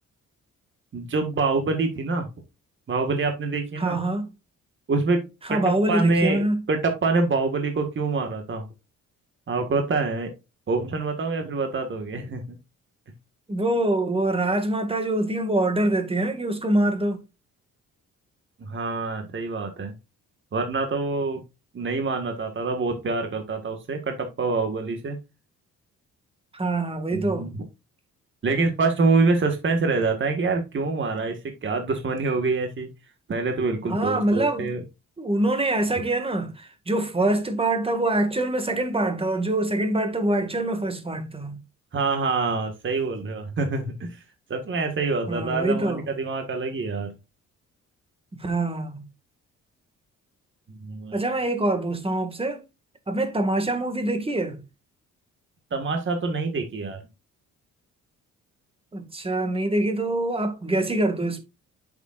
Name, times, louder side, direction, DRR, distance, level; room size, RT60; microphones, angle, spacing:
voice 1, 0.9-2.3 2.9-4.0 4.9-6.4 6.7-8.7 9.5-10.3 10.7-12.6 18.6-19.9 20.5-21.4 21.7-25.2 27.1-27.6 28.4-32.9 33.3-34.8 41.9-44.2 44.5-47.1 50.7-51.3 55.7-57.0, right 3 dB, 40° right, 1.8 m, -26 dB
voice 2, 3.8-4.3 5.5-6.6 13.5-17.2 26.5-27.5 33.8-34.7 35.2-41.6 45.3-46.0 48.3-49.1 51.1-52.6 53.1-54.6 58.9-61.4, right 1 dB, 20° right, 2.0 m, -25 dB
8.3 x 7.1 x 2.5 m
cardioid pair, 90°, 30 cm